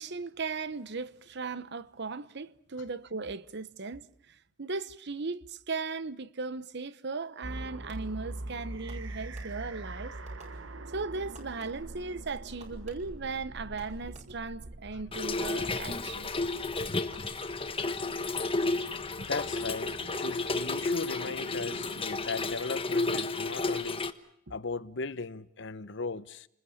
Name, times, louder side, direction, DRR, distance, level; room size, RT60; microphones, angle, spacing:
voice 1, 0.0-10.2 10.9-16.3 20.5-20.6, right 4 dB, 60° right, 1.0 m, -37 dB
sound 1, 7.4-22.0, right 2 dB, 75° right, 1.3 m, -44 dB
Fireworks, 7.9-8.3 8.9-9.9 10.3-11.0 11.3-12.0 12.6-14.6 15.1-15.8 16.2-16.6 17.1-17.9, right 2 dB, 40° right, 6.6 m, -57 dB
Trickle dribble / Fill (with liquid), 15.1-24.1, left 3 dB, 30° left, 1.2 m, -32 dB
voice 2, 19.2-24.0 24.5-26.5, left 4 dB, 65° left, 1.0 m, -37 dB
29.0 x 21.0 x 7.2 m
head